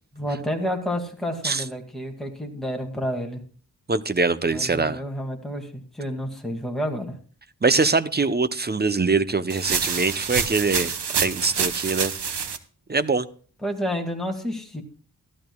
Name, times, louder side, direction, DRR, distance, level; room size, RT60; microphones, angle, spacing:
voice 1, 0.1-3.4 4.5-7.2 13.6-14.8, equal, ahead, 2 dB, 2.2 m, -30 dB
voice 2, 3.9-5.0 7.6-12.1 12.9-13.3, right 4 dB, 25° right, 14 dB, 0.7 m, -23 dB
sound 1, 9.5-12.6, right 6 dB, 80° right, 1.0 m, -27 dB
14.5 x 12.5 x 2.3 m, 0.42 s
wide cardioid pair, 75°, 40 cm